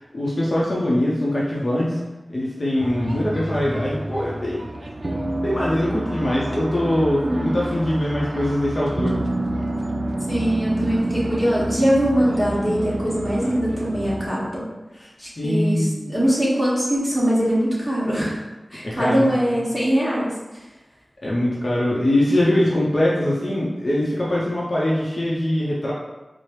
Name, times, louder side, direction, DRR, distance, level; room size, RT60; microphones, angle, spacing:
voice 1, 0.1-2.0 2.3-4.7 5.4-9.2 15.0-15.1 15.4-16.1 18.8-19.5 21.2-25.9, left 1 dB, 50° left, -6 dB, 0.6 m, -22 dB
sound 1, 2.8-14.3, right 1 dB, 55° right, 0.4 m, -28 dB
voice 2, 7.2-7.5 10.3-14.6 15.2-18.4 18.7-20.3, equal, 5° left, -8 dB, 1.3 m, -22 dB
4.7 x 2.0 x 3.0 m, 1.1 s
wide cardioid pair, 75°, 0 cm